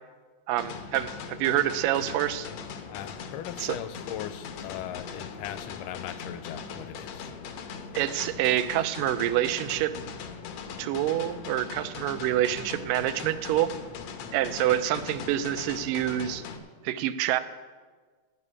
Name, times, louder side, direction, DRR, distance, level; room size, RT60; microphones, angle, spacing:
voice 1, 0.5-2.5 3.6-3.8 8.0-9.9 10.8-13.7 14.3-16.4 16.8-17.4, right 13 dB, 90° right, 12 dB, 2.3 m, -27 dB
sound 1, 0.6-16.6, left 6 dB, 65° left, 2.0 m, -40 dB
voice 2, 2.9-7.3, left 11 dB, 85° left, 13 dB, 2.2 m, -39 dB
15.0 x 5.5 x 9.8 m, 1.4 s
omnidirectional pair, 3.8 m